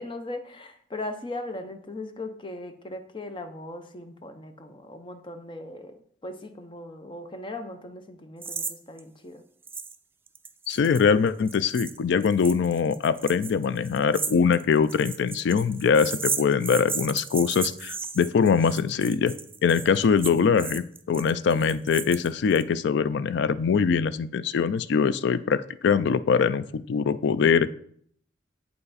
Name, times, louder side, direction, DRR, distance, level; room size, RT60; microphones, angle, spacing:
voice 1, 0.0-9.4, left 2 dB, 25° left, 7 dB, 0.7 m, -38 dB
sound 1, 8.4-8.7 9.0-9.1 9.7-10.0 10.3-22.6, right 5 dB, 10° right, 0.4 m, -34 dB
voice 2, 10.7-19.3 19.6-27.7, left 6 dB, 65° left, 15 dB, 0.3 m, -23 dB
8.0 x 5.5 x 4.1 m, 0.63 s
head